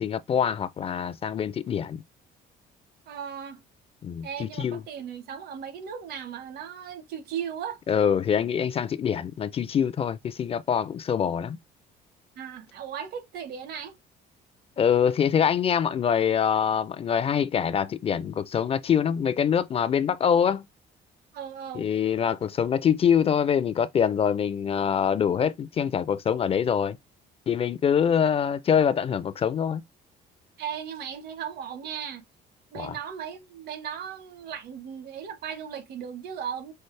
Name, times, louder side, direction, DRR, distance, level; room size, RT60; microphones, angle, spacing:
voice 1, 0.0-2.0 4.0-4.8 7.9-11.6 14.8-20.7 21.7-27.0 27.5-29.8 32.8-32.9, left 8 dB, 35° left, 0.4 m, -24 dB
voice 2, 3.1-3.6 4.2-7.8 12.4-14.0 21.3-21.9 30.6-32.2 32.7-36.7, right 8 dB, 70° right, 1.1 m, -37 dB
5.5 x 2.0 x 3.2 m
cardioid pair, 110°, 17 cm